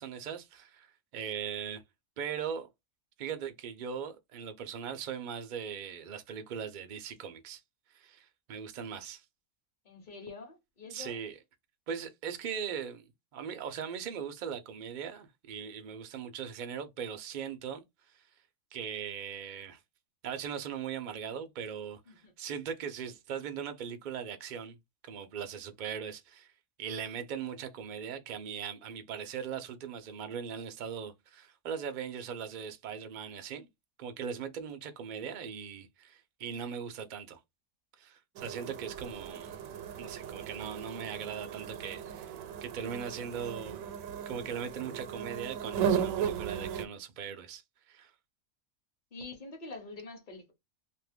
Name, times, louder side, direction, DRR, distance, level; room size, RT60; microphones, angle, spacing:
voice 1, 0.0-1.8 2.2-2.7 3.2-7.6 7.9-9.2 10.9-11.4 11.9-13.0 13.3-17.8 18.1-18.2 18.7-19.8 20.2-22.0 22.4-24.8 25.0-26.5 26.8-33.7 34.0-37.4 38.0-39.6 40.0-42.3 42.6-43.8 44.3-47.6 47.9-48.1, right 7 dB, 55° right, 0.5 m, -39 dB
voice 2, 9.8-11.2 22.1-22.3 49.1-50.5, left 3 dB, 40° left, 1.0 m, -46 dB
sound 1, 38.4-46.9, right 8 dB, 80° right, 1.0 m, -36 dB
2.7 x 2.5 x 3.4 m
omnidirectional pair, 1.4 m